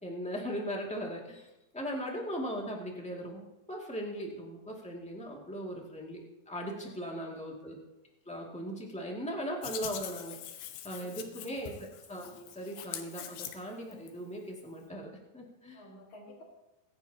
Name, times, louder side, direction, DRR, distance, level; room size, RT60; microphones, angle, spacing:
voice 1, 0.0-6.2 6.4-7.8 8.2-15.8, equal, 5° left, -2 dB, 1.1 m, -39 dB
voice 2, 6.8-7.4 11.0-11.6 15.7-16.4, left 1 dB, 55° left, -7 dB, 3.3 m, -54 dB
Hands, 9.6-14.1, left 10 dB, 85° left, 3.0 m, -43 dB
24.5 x 10.5 x 2.9 m, 0.96 s
omnidirectional pair, 4.4 m